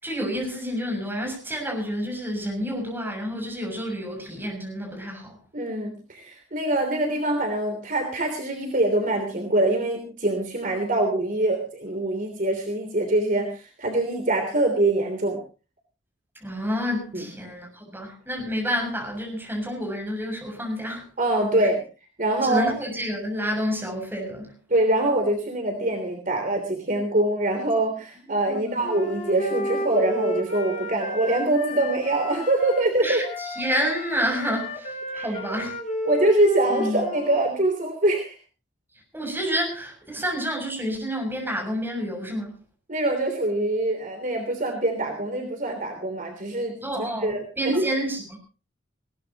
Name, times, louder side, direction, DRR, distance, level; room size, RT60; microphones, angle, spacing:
voice 1, 0.0-5.3 16.4-21.0 22.4-24.5 28.5-28.9 33.0-33.2 33.6-34.9 35.2-35.7 36.7-37.0 39.1-42.5 46.8-48.4, equal, 10° right, 2 dB, 7.0 m, -29 dB
voice 2, 5.5-15.4 17.1-17.3 21.2-21.8 22.2-22.7 24.7-33.2 35.1-35.4 36.0-38.4 42.9-46.8 47.2-47.9, right 1 dB, 45° right, 4 dB, 3.2 m, -24 dB
Wind instrument woodwind instrument, 28.8-32.9 33.2-37.5, left 1 dB, 40° left, 3.9 m, -32 dB
20.5 x 18.5 x 3.0 m, 0.35 s
head